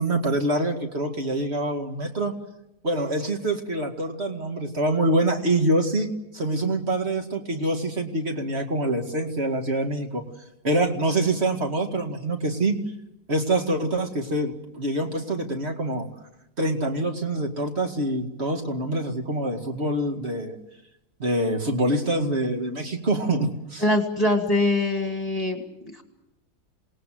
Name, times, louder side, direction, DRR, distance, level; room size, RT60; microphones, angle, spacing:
voice 1, 0.0-2.3 2.8-6.1 6.3-10.2 10.6-12.8 13.3-16.1 16.6-20.6 21.2-23.8, right 1 dB, 35° right, 4 dB, 2.3 m, -25 dB
voice 2, 23.8-26.0, left 2 dB, 10° left, 4 dB, 2.0 m, -23 dB
27.5 x 19.5 x 7.7 m, 0.88 s
omnidirectional pair, 1.9 m